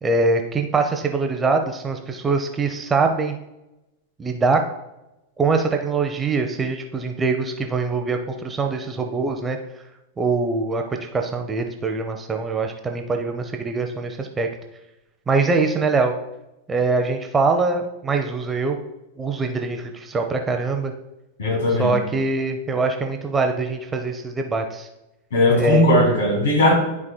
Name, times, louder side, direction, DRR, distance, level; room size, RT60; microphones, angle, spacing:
voice 1, 0.0-3.3 4.2-4.6 5.4-9.6 10.2-14.5 15.3-16.1 16.7-18.8 19.2-20.9 21.8-24.9 25.6-25.8, right 4 dB, 15° right, 4 dB, 0.7 m, -23 dB
voice 2, 21.4-21.9 25.3-26.7, left 1 dB, 60° left, 0 dB, 2.6 m, -18 dB
12.5 x 4.8 x 2.2 m, 0.95 s
figure-of-eight pair, 90°, 0 cm